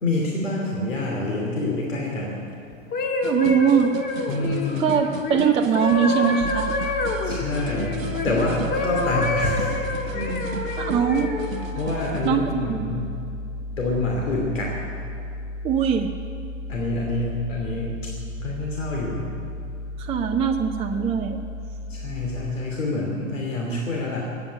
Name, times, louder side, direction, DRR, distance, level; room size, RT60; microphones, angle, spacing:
voice 1, 0.0-2.4 4.3-4.8 7.2-8.0 8.2-9.7 10.0-10.5 11.7-13.0 13.8-14.7 16.7-18.0 18.4-19.3 21.9-24.3, left 2 dB, 75° left, -2 dB, 2.9 m, -27 dB
sound 1, 2.7-8.3 8.7-11.6 12.2-12.5, left 3 dB, 25° left, 1.7 m, -28 dB
voice 2, 3.2-3.9 4.8-6.7 10.8-11.3 12.2-12.9 15.6-16.1 20.0-21.4 23.7-23.8, right 7 dB, 15° right, 5 dB, 0.5 m, -22 dB
sound 2, 3.2-12.3, right 5 dB, 90° right, 0.9 m, -36 dB
sound 3, 6.4-22.4, left 1 dB, 40° right, 1.8 m, -34 dB
15.0 x 9.6 x 9.4 m, 2.6 s
figure-of-eight pair, 105°, 39 cm